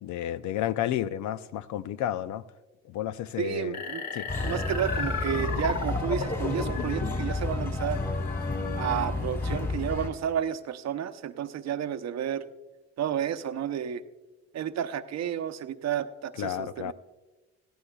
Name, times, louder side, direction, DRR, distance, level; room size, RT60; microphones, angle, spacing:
voice 1, 0.0-2.4 2.9-3.8 4.1-4.3 16.4-16.9, left 11 dB, 75° left, 15 dB, 0.5 m, -31 dB
voice 2, 3.4-4.0 4.4-8.0 8.8-12.4 13.0-14.0 14.5-16.9, right 9 dB, 60° right, 11 dB, 0.7 m, -31 dB
sound 1, 3.7-7.3, left 3 dB, 60° left, 2.6 m, -34 dB
sound 2, 4.3-10.1, left 3 dB, 30° left, 3.9 m, -31 dB
19.5 x 14.5 x 2.3 m, 1.2 s
supercardioid pair, 65°, 30 cm